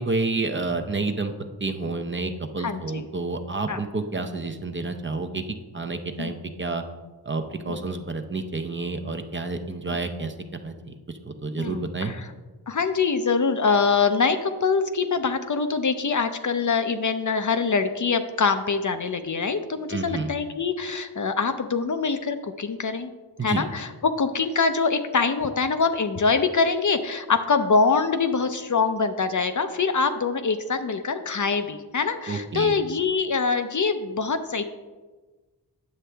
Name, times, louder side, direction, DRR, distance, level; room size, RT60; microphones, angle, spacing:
voice 1, 0.0-1.3 1.6-5.4 5.7-6.8 7.3-10.3 10.6-10.9 11.2-12.1 19.9-20.3 23.4-23.7 32.3-32.7, right 3 dB, 30° right, 5 dB, 0.5 m, -29 dB
voice 2, 2.6-3.1 3.7-3.8 6.2-6.3 7.7-7.9 11.6-12.3 12.7-23.1 23.4-34.6, left 4 dB, 45° left, 8 dB, 0.5 m, -24 dB
9.5 x 7.3 x 3.3 m, 1.3 s
wide cardioid pair, 95°, 41 cm